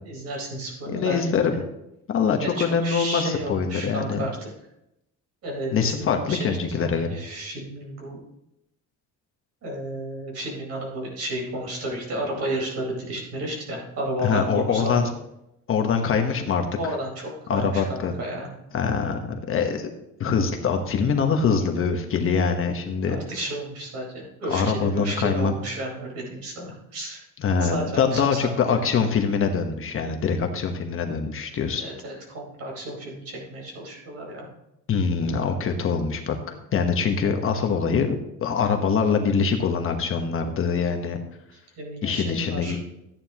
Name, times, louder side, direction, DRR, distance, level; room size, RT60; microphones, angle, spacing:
voice 1, 0.0-1.4 2.4-4.5 5.4-8.2 9.6-15.1 16.8-18.5 23.1-27.2 27.6-28.8 31.8-34.5 41.5-42.8, right 1 dB, 55° right, -1 dB, 4.6 m, -32 dB
voice 2, 0.9-1.6 2.1-4.2 5.7-7.1 14.2-15.1 15.7-16.7 17.5-18.1 18.7-19.9 20.2-23.2 24.5-25.5 27.4-31.8 34.9-38.1 38.4-41.2 42.0-42.8, left 5 dB, 40° left, 4 dB, 1.2 m, -24 dB
13.5 x 9.6 x 3.0 m, 0.84 s
cardioid pair, 155°, 32 cm